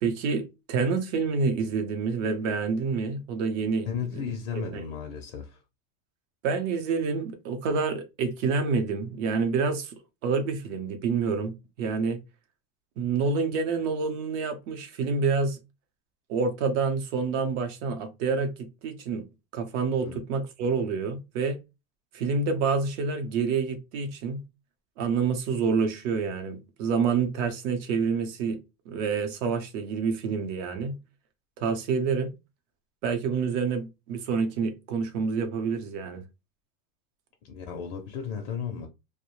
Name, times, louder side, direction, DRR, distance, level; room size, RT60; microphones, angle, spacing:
voice 1, 0.0-4.3 4.7-4.8 6.4-9.9 10.2-12.2 13.0-15.6 16.3-19.2 19.5-21.6 22.1-24.4 25.0-28.6 28.9-31.0 31.6-32.3 33.0-36.2, right 5 dB, 55° right, 0.7 m, -28 dB
voice 2, 3.8-5.6 20.0-20.2 37.4-38.9, left 7 dB, 45° left, 0.4 m, -34 dB
2.3 x 2.1 x 2.9 m
supercardioid pair, 155°, 44 cm